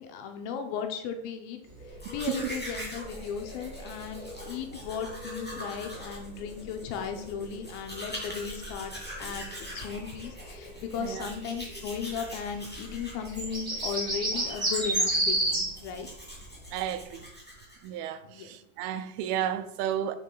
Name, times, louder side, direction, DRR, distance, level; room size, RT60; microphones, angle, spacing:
voice 1, 0.0-1.6 2.1-8.9 9.2-16.1 18.2-18.6, left 6 dB, 85° left, 2.4 m, -36 dB
sound 1, 1.7-16.1 16.4-16.9 17.2-17.3, right 1 dB, 70° right, 0.4 m, -34 dB
Domestic sounds home sounds, 1.9-18.0, equal, 10° left, 0.4 m, -43 dB
voice 2, 16.7-17.2 17.8-20.2, right 10 dB, 85° right, 2.4 m, -32 dB
8.4 x 3.1 x 4.5 m
omnidirectional pair, 4.3 m